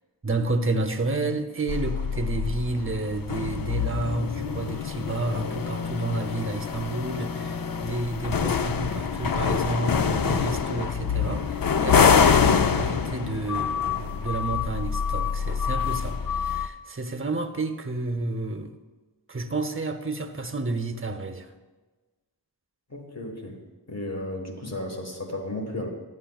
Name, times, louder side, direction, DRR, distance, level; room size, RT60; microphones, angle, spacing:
voice 1, 0.2-18.7 19.3-21.5, right 2 dB, 30° right, 7 dB, 0.7 m, -30 dB
sound 1, 1.7-16.7, left 6 dB, 55° left, 0.5 m, -25 dB
voice 2, 22.9-23.6 23.9-25.9, left 1 dB, 35° left, 2 dB, 1.5 m, -34 dB
11.5 x 9.5 x 2.3 m, 1.3 s
wide cardioid pair, 45°, 44 cm